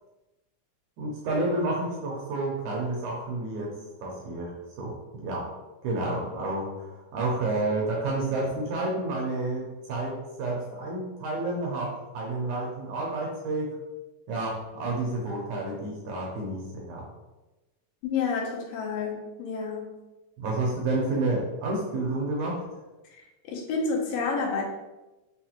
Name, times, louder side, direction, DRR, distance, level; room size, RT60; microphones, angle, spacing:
voice 1, 1.0-3.7 4.0-5.6 5.8-13.8 14.3-17.1 20.4-22.6, right 2 dB, 75° right, -3 dB, 1.8 m, -30 dB
voice 2, 18.0-19.9 23.1-24.6, left 4 dB, 85° left, -2 dB, 2.4 m, -30 dB
5.7 x 2.2 x 2.9 m, 1.1 s
omnidirectional pair, 3.9 m